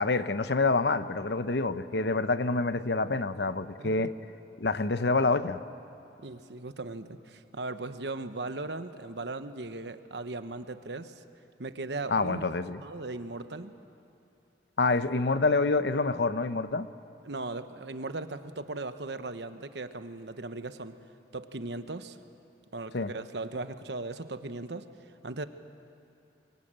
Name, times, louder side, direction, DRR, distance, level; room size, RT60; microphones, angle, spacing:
voice 1, 0.0-4.1 4.6-5.6 12.1-12.8 14.8-16.9 22.9-23.1, left 3 dB, 70° left, 12 dB, 0.8 m, -27 dB
voice 2, 3.8-4.1 6.2-11.2 11.6-13.7 17.2-21.0 21.3-22.2 22.7-24.8 25.2-25.4, right 2 dB, 75° right, 10 dB, 1.1 m, -38 dB
24.0 x 23.0 x 9.0 m, 2.7 s
head